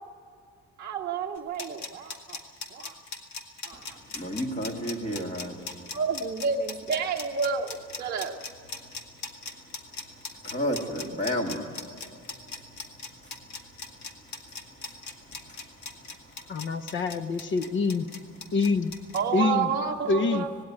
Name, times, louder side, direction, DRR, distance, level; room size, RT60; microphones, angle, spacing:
voice 1, 0.8-2.4 2.7-3.0 3.6-4.0 5.9-8.3 19.1-20.5, right 5 dB, 30° right, -2 dB, 0.8 m, -30 dB
sound 1, 1.4-19.2, left 4 dB, 60° left, 2.0 m, -39 dB
voice 2, 4.1-5.5 10.4-11.6, equal, 20° left, 3 dB, 2.0 m, -30 dB
voice 3, 16.5-18.1 18.5-18.9 19.3-19.7 20.1-20.5, left 4 dB, 40° left, 12 dB, 0.7 m, -26 dB
18.5 x 17.5 x 9.5 m, 2.2 s
cardioid pair, 170°, 31 cm